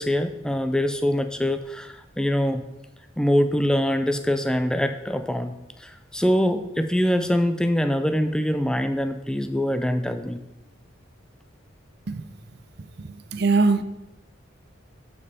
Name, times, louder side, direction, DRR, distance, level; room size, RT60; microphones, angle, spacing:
voice 1, 0.0-2.6 3.2-5.5 5.8-10.4, equal, 5° left, 0.4 m, -24 dB
voice 2, 13.3-13.8, right 3 dB, 50° right, 0.5 m, -20 dB
12.0 x 5.4 x 4.1 m
head